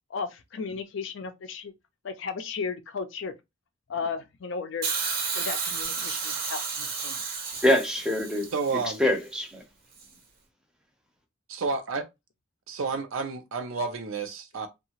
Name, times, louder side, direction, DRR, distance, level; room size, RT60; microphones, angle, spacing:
voice 1, 0.1-1.7 2.0-3.3 3.9-4.9 5.3-7.2, left 5 dB, 65° left, 0.4 m, -35 dB
Hiss, 4.8-9.0 10.0-10.1, right 5 dB, 50° right, 0.7 m, -32 dB
voice 2, 7.6-9.6, left 1 dB, 5° right, 0.6 m, -25 dB
voice 3, 8.5-9.0 11.5-12.0 12.7-14.7, right 4 dB, 90° right, 0.5 m, -30 dB
2.7 x 2.3 x 2.8 m
head